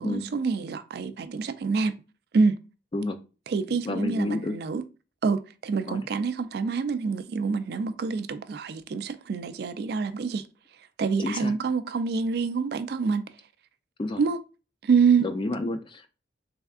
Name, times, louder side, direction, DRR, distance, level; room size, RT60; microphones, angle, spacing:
voice 1, 0.0-1.9 2.3-2.6 3.5-4.8 5.2-10.4 11.0-13.3 14.2-14.4 14.8-15.3, right 5 dB, 60° right, 0.3 m, -26 dB
voice 2, 3.8-4.6 5.9-6.0 11.2-11.5 14.0-14.2 15.2-16.1, left 2 dB, 25° left, 0.3 m, -30 dB
3.5 x 3.4 x 2.4 m
head